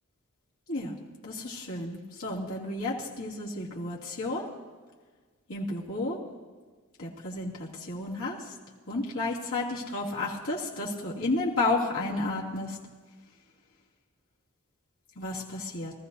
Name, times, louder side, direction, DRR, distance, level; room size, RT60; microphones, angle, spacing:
voice 1, 1.2-4.5 5.5-6.2 7.0-8.4 8.9-12.8 15.2-15.9, left 2 dB, 75° left, -6 dB, 2.8 m, -32 dB
23.5 x 14.5 x 2.8 m, 1.5 s
head